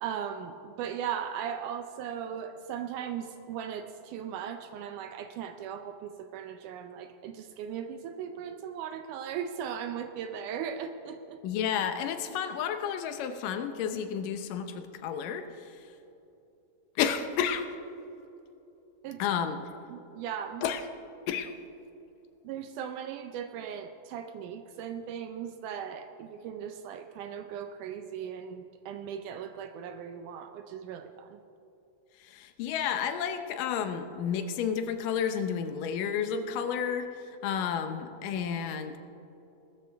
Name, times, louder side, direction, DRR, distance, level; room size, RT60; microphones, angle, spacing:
voice 1, 0.0-11.4 19.0-19.2 19.9-20.7 22.4-31.4, right 8 dB, 80° right, 7 dB, 2.1 m, -38 dB
voice 2, 11.4-15.9 17.0-17.7 19.2-19.6 20.6-20.8 21.3-21.5 32.2-39.0, left 8 dB, 85° left, 8 dB, 2.5 m, -31 dB
20.5 x 13.5 x 3.5 m, 2.9 s
omnidirectional pair, 3.7 m